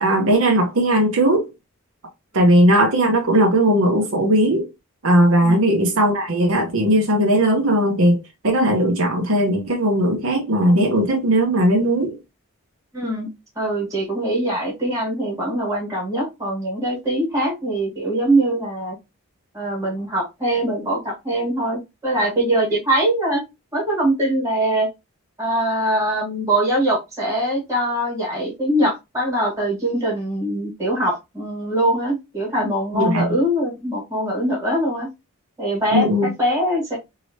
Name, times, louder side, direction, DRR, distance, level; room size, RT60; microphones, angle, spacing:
voice 1, 0.0-1.5 2.3-4.7 5.0-8.2 8.4-12.2 32.9-33.3 35.9-36.3, right 1 dB, 70° right, 0.8 m, -18 dB
voice 2, 12.9-13.3 13.5-19.0 19.5-23.4 23.7-24.9 25.4-35.1 35.6-37.0, right 1 dB, 15° right, 1.4 m, -22 dB
3.2 x 2.8 x 2.7 m
head